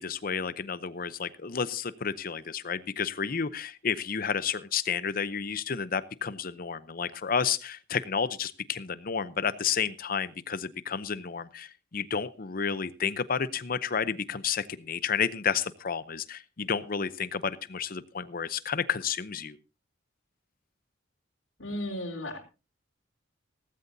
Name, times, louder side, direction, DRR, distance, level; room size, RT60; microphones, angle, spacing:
voice 1, 0.0-19.6, left 6 dB, 50° left, 16 dB, 0.7 m, -31 dB
voice 2, 21.6-22.4, left 1 dB, 90° left, 1 dB, 4.0 m, -34 dB
17.0 x 15.0 x 2.7 m, 0.31 s
head